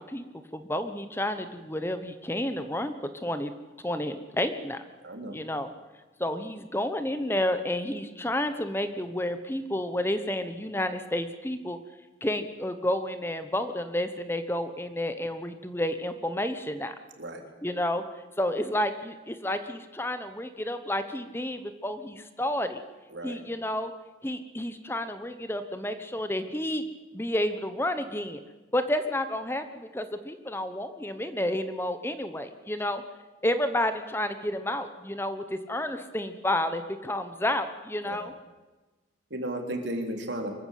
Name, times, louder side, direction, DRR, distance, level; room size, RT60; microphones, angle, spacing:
voice 1, 0.5-2.9 3.2-3.5 3.8-4.8 5.3-5.7 6.2-11.8 12.2-16.9 17.6-18.0 18.4-22.8 23.2-23.9 24.2-26.9 27.1-28.4 28.7-33.0 33.4-38.3, left 1 dB, 15° left, 10 dB, 1.1 m, -30 dB
voice 2, 5.0-5.4 17.2-17.4 23.1-23.4 38.0-38.2 39.3-40.5, right 1 dB, 90° right, 3 dB, 3.6 m, -34 dB
24.5 x 14.0 x 8.4 m, 1.2 s
head